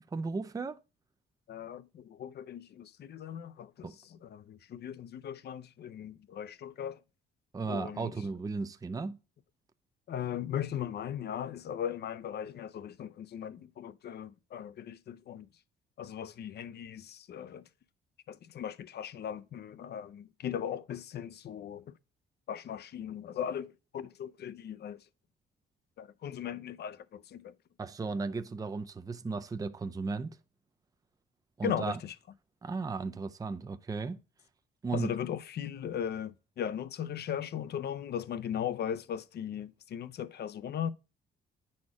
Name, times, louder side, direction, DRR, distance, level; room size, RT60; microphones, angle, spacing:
voice 1, 0.1-0.8 3.8-4.0 7.5-9.2 27.8-30.4 31.6-32.0 32.6-34.2 34.8-35.1, right 4 dB, 20° right, 0.5 m, -35 dB
voice 2, 1.5-7.0 7.6-8.1 10.1-15.5 16.0-17.6 18.3-21.9 22.5-25.0 26.0-27.5 31.6-32.1 34.9-40.9, left 9 dB, 55° left, 0.6 m, -38 dB
9.5 x 4.3 x 4.8 m
cardioid pair, 90°, 20 cm